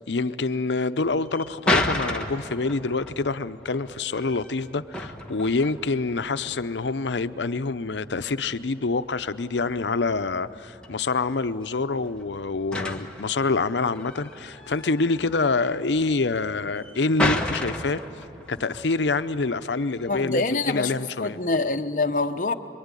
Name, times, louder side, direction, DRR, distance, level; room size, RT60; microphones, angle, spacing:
voice 1, 0.1-18.0 18.5-21.4, left 3 dB, 85° left, 0.7 m, -26 dB
sound 1, 1.0-20.8, left 1 dB, 5° left, 1.5 m, -33 dB
voice 2, 20.1-20.9 21.2-22.5, left 3 dB, 45° left, 1.0 m, -25 dB
25.5 x 23.5 x 9.8 m
head